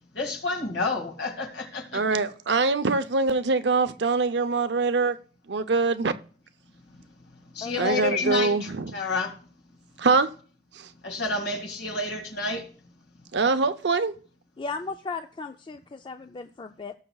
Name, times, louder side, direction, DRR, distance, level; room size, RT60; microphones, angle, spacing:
voice 1, 0.1-2.2 7.5-9.3 11.0-12.7, left 3 dB, 65° left, 2.1 m, -30 dB
voice 2, 1.9-5.2 5.5-6.1 7.8-8.9 10.0-10.3 10.7-10.9 13.3-14.1, right 4 dB, 70° right, 0.6 m, -23 dB
voice 3, 14.6-16.9, left 4 dB, 25° left, 0.4 m, -36 dB
18.0 x 6.7 x 2.3 m
head